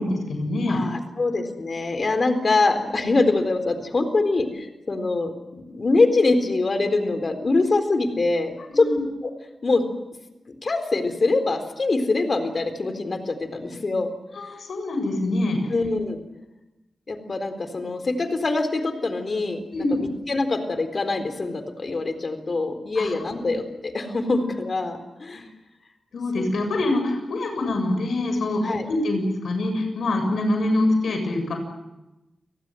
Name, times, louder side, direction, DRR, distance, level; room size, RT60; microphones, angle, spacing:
voice 1, 0.0-0.8 8.7-9.0 14.3-15.7 19.7-20.0 23.0-23.1 26.1-31.5, left 2 dB, 75° left, 5 dB, 7.4 m, -25 dB
voice 2, 0.7-8.9 9.2-9.3 9.6-9.8 10.5-14.1 15.7-16.2 17.1-19.6 20.0-25.4 26.4-26.5 28.6-28.8, left 3 dB, 45° left, 9 dB, 4.0 m, -24 dB
30.0 x 19.0 x 7.8 m, 1.0 s
cardioid pair, 85°, 0 cm